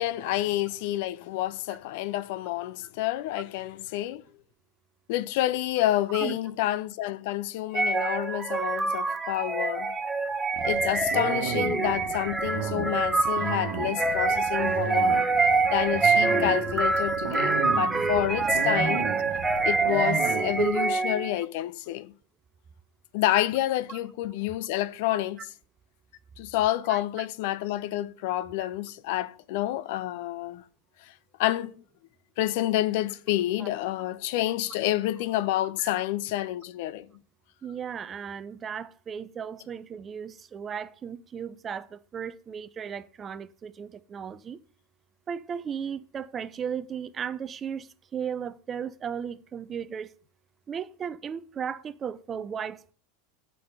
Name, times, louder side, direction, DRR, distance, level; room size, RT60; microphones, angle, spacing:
voice 1, 0.0-4.2 5.1-10.0 10.6-15.2 15.7-19.0 19.6-22.1 23.1-25.4 26.4-30.6 31.4-31.7 32.4-37.1, left 15 dB, 55° left, 0.5 m, -28 dB
sound 1, 7.7-21.4, right 3 dB, 10° right, 0.9 m, -26 dB
sound 2, 10.5-20.7, right 7 dB, 55° right, 1.3 m, -34 dB
voice 2, 26.9-27.3 28.6-28.7 33.6-33.7 35.8-35.9 37.6-44.6 45.3-50.1 50.7-52.9, right 7 dB, 25° right, 0.5 m, -36 dB
8.7 x 5.4 x 6.2 m
figure-of-eight pair, 85°, 0 cm